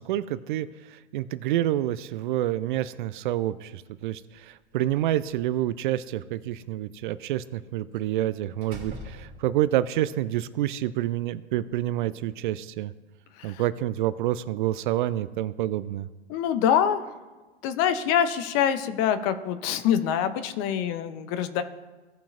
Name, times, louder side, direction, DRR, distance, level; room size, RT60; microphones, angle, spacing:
voice 1, 0.0-12.9 13.4-16.1, right 13 dB, 50° right, 16 dB, 0.4 m, -28 dB
Slam, 4.8-5.8 7.9-8.2 8.6-9.8, equal, 30° right, 2.9 m, -43 dB
voice 2, 16.3-17.1 17.6-21.6, left 9 dB, 40° left, 11 dB, 0.7 m, -25 dB
16.5 x 5.7 x 2.6 m, 1.2 s
figure-of-eight pair, 100°, 33 cm